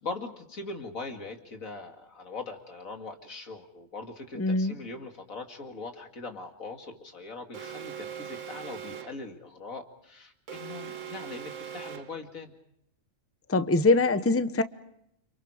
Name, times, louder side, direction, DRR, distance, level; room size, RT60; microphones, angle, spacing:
voice 1, 0.0-12.5, left 3 dB, 85° left, 4 dB, 2.8 m, -41 dB
voice 2, 4.3-4.7 13.5-14.6, left 3 dB, 15° left, 11 dB, 0.7 m, -23 dB
Alarm, 7.5-9.3 10.5-12.3, right 8 dB, 70° right, 1.5 m, -41 dB
29.5 x 27.0 x 5.0 m, 0.75 s
omnidirectional pair, 1.4 m